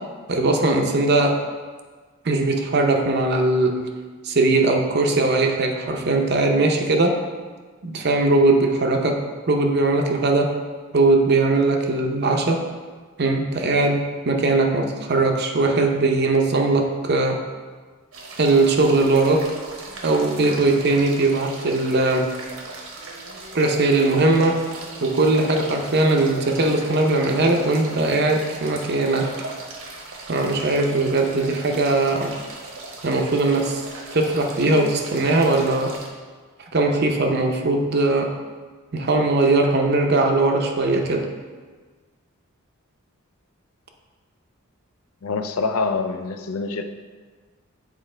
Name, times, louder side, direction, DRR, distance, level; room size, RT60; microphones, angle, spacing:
voice 1, 0.3-1.4 2.2-3.7 4.2-7.2 7.8-9.2 9.5-10.5 10.9-12.6 13.2-17.4 18.4-19.4 20.0-22.3 23.5-24.6 25.0-29.3 30.3-32.3 33.0-33.8 34.1-35.9 36.7-38.3 38.9-41.3, right 2 dB, 50° right, 3 dB, 0.7 m, -20 dB
sound 1, 18.1-36.1, right 2 dB, 70° right, 1.1 m, -38 dB
voice 2, 45.2-46.8, left 4 dB, 80° left, 8 dB, 0.5 m, -25 dB
7.5 x 4.5 x 3.3 m, 1.4 s
head